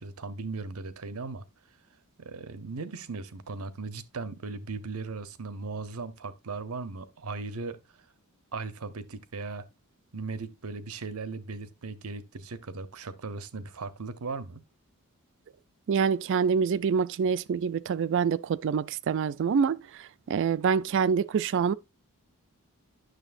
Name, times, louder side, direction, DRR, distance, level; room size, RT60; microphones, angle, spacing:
voice 1, 0.0-1.4 2.2-7.8 8.5-9.7 10.1-14.6, right 3 dB, 85° right, 0.7 m, -37 dB
voice 2, 15.9-19.8 20.3-21.7, right 6 dB, 55° right, 0.3 m, -26 dB
9.1 x 6.5 x 2.5 m
head